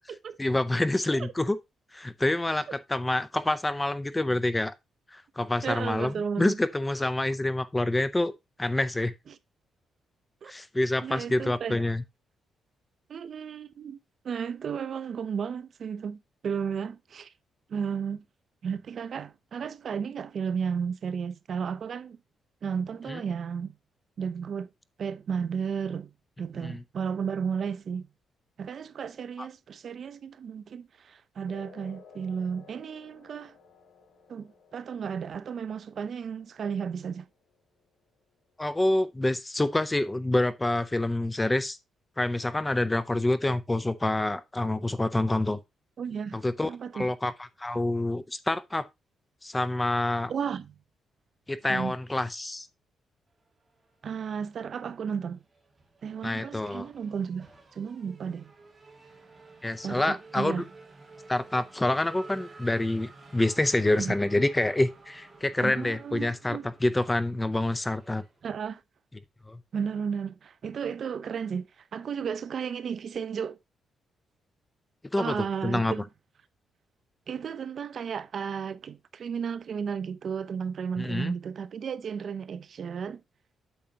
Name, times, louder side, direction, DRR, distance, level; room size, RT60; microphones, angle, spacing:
voice 1, 0.4-1.6 1.9-4.7 5.1-8.3 8.6-9.1 10.5-12.0 23.1-23.2 26.6-26.8 29.4-29.5 38.6-41.8 42.2-45.6 46.3-48.8 49.4-50.3 51.5-52.7 56.2-56.9 59.6-60.6 61.3-68.2 69.5-69.6 75.1-75.9 81.0-81.3, left 1 dB, 10° left, 0.5 m, -27 dB
voice 2, 5.6-6.6 9.3-9.4 10.4-10.5 11.0-11.8 13.1-14.0 14.2-17.3 17.7-18.2 18.6-22.2 22.6-23.8 24.2-24.7 25.0-28.1 28.6-33.6 34.3-37.3 46.0-47.1 50.3-50.7 51.7-51.9 54.0-55.4 56.0-58.5 59.8-60.6 64.0-64.1 65.6-66.7 68.4-68.8 69.7-73.6 75.2-76.1 77.3-83.2, right 7 dB, 50° right, 0.5 m, -33 dB
sound 1, 31.5-38.5, left 5 dB, 85° left, 1.8 m, -56 dB
Race car auto racing / Accelerating revving vroom, 53.7-54.7 55.0-68.7, right 3 dB, 15° right, 2.5 m, -52 dB
8.7 x 6.8 x 2.8 m
cardioid pair, 135°, 0 cm